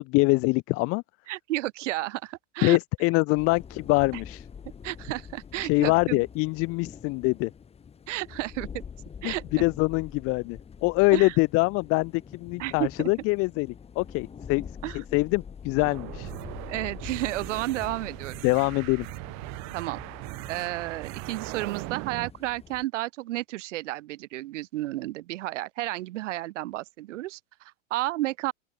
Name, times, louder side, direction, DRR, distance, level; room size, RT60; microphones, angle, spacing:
voice 1, 0.1-1.0 2.6-4.5 5.6-7.5 9.2-13.7 13.9-16.3 18.4-19.1, left 26 dB, 35° left, 1.2 m, -24 dB
voice 2, 1.3-2.8 4.8-6.2 8.1-8.8 9.2-9.4 11.1-11.4 12.6-13.1 14.8-15.0 16.7-18.4 19.7-20.0 20.5-28.5, right 17 dB, 70° right, 7.5 m, -32 dB
sound 1, 3.4-22.8, left 6 dB, 15° left, 5.5 m, -45 dB
sound 2, 15.8-22.3, right 29 dB, 45° right, 6.8 m, -39 dB
open air
supercardioid pair, 155°, 38 cm